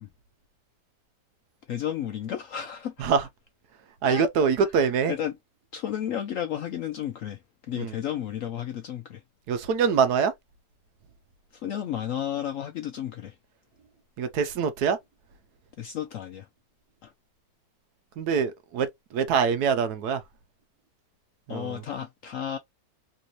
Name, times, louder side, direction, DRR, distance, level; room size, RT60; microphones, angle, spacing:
voice 1, 1.7-3.1 4.0-4.3 5.1-5.4 5.7-7.4 7.7-9.2 11.5-13.3 15.8-16.5 17.0-17.1 21.5-22.6, left 10 dB, 70° left, 0.7 m, -32 dB
voice 2, 4.0-5.1 7.8-7.9 9.5-10.3 14.2-15.0 18.2-18.9 19.1-20.2 21.5-21.8, right 6 dB, 75° right, 1.2 m, -24 dB
3.4 x 2.5 x 2.9 m
omnidirectional pair, 1.8 m